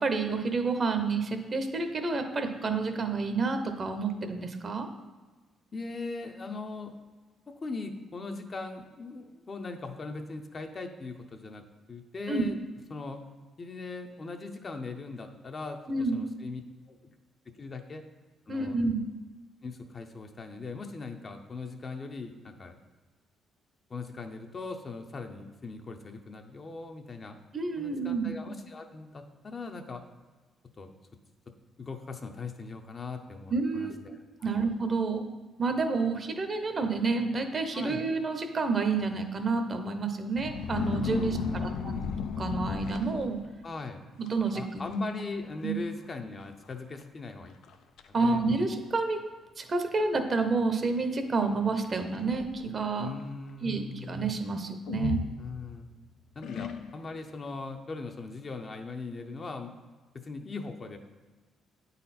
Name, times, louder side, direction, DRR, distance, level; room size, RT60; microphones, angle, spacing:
voice 1, 0.0-4.9 12.3-12.5 15.9-16.3 18.5-19.0 27.5-28.3 33.5-34.0 34.4-35.2 35.6-42.0 42.4-43.4 44.2-45.0 45.6-45.8 48.1-49.2 49.6-53.1 53.6-55.2, right 4 dB, 40° right, 6 dB, 0.8 m, -29 dB
voice 2, 5.7-6.9 7.5-11.6 11.9-12.6 12.9-13.2 13.6-16.6 16.9-17.1 17.6-18.0 18.5-18.8 19.6-22.8 23.9-27.4 27.8-30.0 30.8-30.9 31.8-34.6 37.7-38.1 41.1-42.0 43.6-44.0 44.5-47.5 48.1-48.4 53.0-54.2 55.4-55.9 56.4-59.7 60.1-61.0, left 3 dB, 40° left, 5 dB, 0.7 m, -40 dB
sound 1, 40.3-43.6 44.3-44.5 44.8-45.3 45.5-45.6 46.4-46.5 47.0-47.1 47.6-48.1 48.9-49.0 51.8-52.8 54.9-55.9 56.4-57.2, left 6 dB, 80° left, 0.4 m, -34 dB
8.5 x 4.1 x 4.2 m, 1.3 s
cardioid pair, 90°, 0 cm